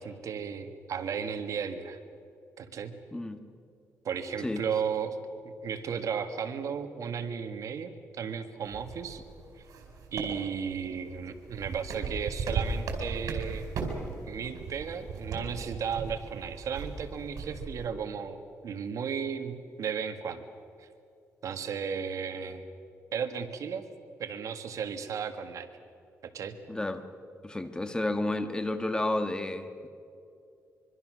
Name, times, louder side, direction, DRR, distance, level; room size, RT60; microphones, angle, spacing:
voice 1, 0.0-2.0 2.6-3.0 4.0-5.2 5.4-9.2 9.6-9.7 10.1-13.7 14.2-20.4 20.8-20.9 21.4-22.7 23.1-23.8 24.2-25.7 26.2-26.6, right 7 dB, 70° right, 8 dB, 1.8 m, -35 dB
sound 1, 8.6-17.9, right 4 dB, 85° right, 4.7 m, -37 dB
voice 2, 26.7-27.1 27.4-29.9, left 2 dB, 15° left, 8 dB, 1.5 m, -31 dB
24.5 x 24.0 x 6.4 m, 2.5 s
cardioid pair, 105°, 6 cm